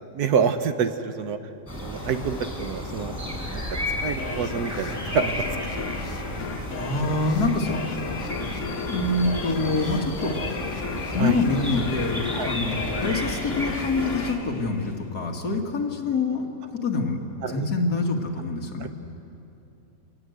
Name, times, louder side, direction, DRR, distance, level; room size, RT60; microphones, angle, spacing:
voice 1, 0.1-1.4 1.8-3.1 3.5-3.6 4.0-5.3 6.6-6.7 11.2-11.4 12.3-12.5 17.4-17.7 18.8-18.9, right 6 dB, 70° right, 9 dB, 1.5 m, -27 dB
sound 1, 1.7-14.3, left 1 dB, 10° right, 5.6 m, -33 dB
sound 2, 4.2-15.4, left 4 dB, 50° left, 1.5 m, -34 dB
voice 2, 6.7-7.9 8.4-8.5 8.9-10.3 11.1-17.2 17.5-18.9, left 3 dB, 70° left, 2 dB, 2.5 m, -26 dB
24.5 x 19.5 x 7.9 m, 2.8 s
omnidirectional pair, 1.8 m